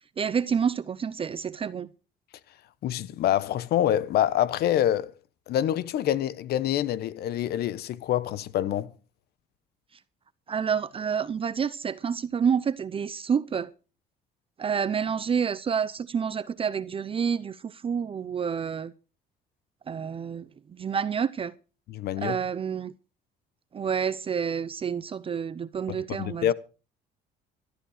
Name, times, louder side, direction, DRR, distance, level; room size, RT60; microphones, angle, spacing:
voice 1, 0.2-1.9 10.5-13.7 14.6-18.9 19.9-20.4 20.8-21.5 22.2-22.9 23.7-26.5, right 7 dB, 35° right, 0.7 m, -28 dB
voice 2, 2.8-5.2 5.5-8.9 21.9-22.4 26.1-26.5, left 11 dB, 70° left, 1.0 m, -26 dB
14.5 x 13.5 x 5.0 m
cardioid pair, 110°, 17 cm